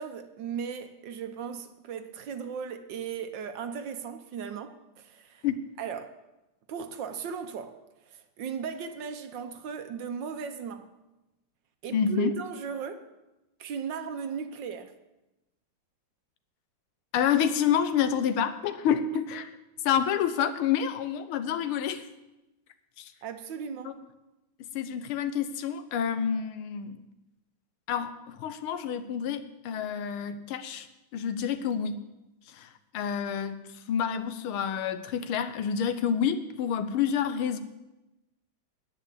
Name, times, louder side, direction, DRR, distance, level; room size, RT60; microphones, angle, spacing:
voice 1, 0.0-5.4 5.8-6.1 6.7-7.8 8.1-10.9 11.8-13.1 13.6-14.9 23.2-23.9, right 7 dB, 65° right, 1.4 m, -37 dB
voice 2, 11.9-12.3 17.1-19.6 19.8-22.0 23.0-23.1 23.8-23.9 24.8-27.0 27.9-30.9 31.1-32.0 32.5-37.6, left 8 dB, 90° left, 1.7 m, -28 dB
9.9 x 8.9 x 8.3 m
omnidirectional pair, 2.3 m